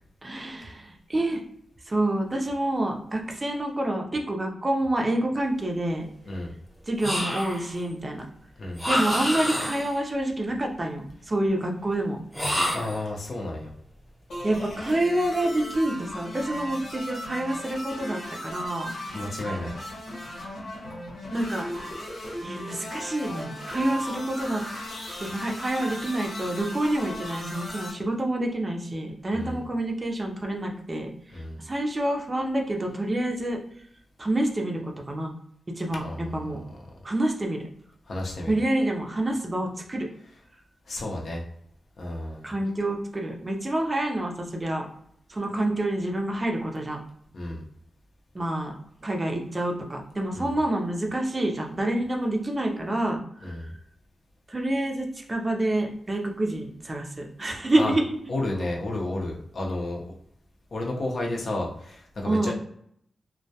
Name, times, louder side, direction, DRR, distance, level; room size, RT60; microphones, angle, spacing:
voice 1, 0.2-1.4 1.9-6.1 6.9-8.3 8.9-12.2 14.4-18.9 21.3-21.7 22.0-22.1 22.4-24.6 25.2-33.6 34.2-35.3 35.7-36.6 37.0-37.7 38.5-40.1 42.4-44.9 45.3-47.0 48.3-48.7 49.0-53.2 53.5-53.7 54.5-58.2 62.2-62.5, right 1 dB, 30° right, 2 dB, 0.5 m, -27 dB
sound 1, 7.0-7.8 8.8-10.0 12.3-13.1, equal, ahead, 0.8 m, -28 dB
voice 2, 12.7-13.7 19.1-19.8 29.3-29.6 31.3-31.6 35.9-36.5 38.1-38.5 40.9-41.4 42.0-42.5 47.3-47.6 50.3-50.5 53.4-53.7 57.8-57.9 58.3-60.1 60.7-62.5, left 2 dB, 60° left, -1 dB, 0.6 m, -32 dB
sound 2, 14.3-27.9, equal, 80° left, 1.0 m, -37 dB
2.2 x 2.1 x 2.7 m, 0.68 s
wide cardioid pair, 100°, 0 cm